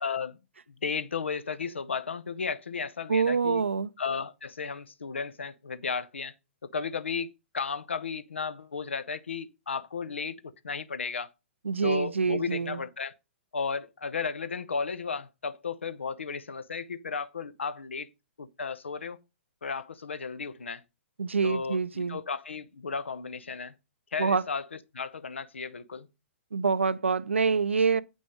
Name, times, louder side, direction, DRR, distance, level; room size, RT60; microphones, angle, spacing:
voice 1, 0.0-0.4 0.8-3.6 4.0-6.3 6.6-10.4 10.6-11.3 11.8-13.1 13.5-18.1 18.4-19.2 19.6-20.8 21.4-23.7 24.1-26.1, left 5 dB, 70° left, 0.8 m, -34 dB
voice 2, 3.1-3.9 11.6-12.8 21.2-22.2 24.2-24.4 26.5-28.0, right 5 dB, 75° right, 0.6 m, -26 dB
8.7 x 6.3 x 5.1 m
figure-of-eight pair, 115°, 7 cm